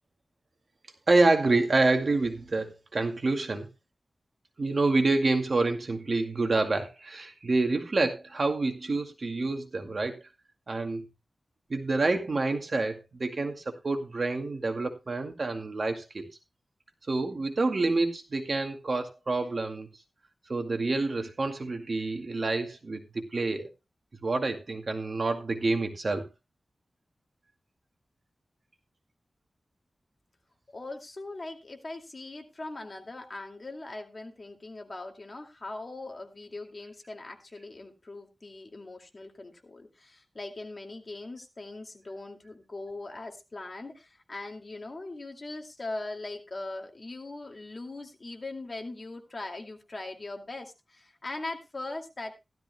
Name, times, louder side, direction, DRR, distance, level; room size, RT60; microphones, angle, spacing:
voice 1, 1.1-3.7 4.6-10.2 10.7-11.0 11.7-16.3 17.1-19.9 20.5-23.7 24.2-26.3, right 3 dB, 50° right, 5 dB, 2.1 m, -27 dB
voice 2, 30.7-52.4, left 2 dB, 40° left, 4 dB, 2.3 m, -40 dB
16.0 x 13.0 x 2.2 m, 0.24 s
wide cardioid pair, 80°, 0 cm